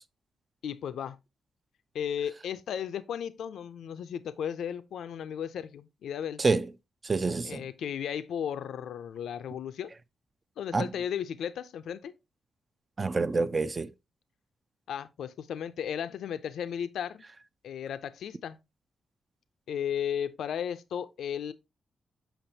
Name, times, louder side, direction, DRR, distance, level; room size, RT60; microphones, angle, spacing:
voice 1, 0.6-1.2 1.9-6.4 7.4-9.9 10.6-12.1 14.9-17.2 17.6-18.6 19.7-21.5, left 8 dB, 85° left, 0.4 m, -35 dB
voice 2, 6.4-6.7 7.0-7.6 10.7-10.9 13.0-13.9, right 3 dB, 30° right, 0.4 m, -27 dB
7.1 x 5.7 x 2.7 m
cardioid pair, 95°, 0 cm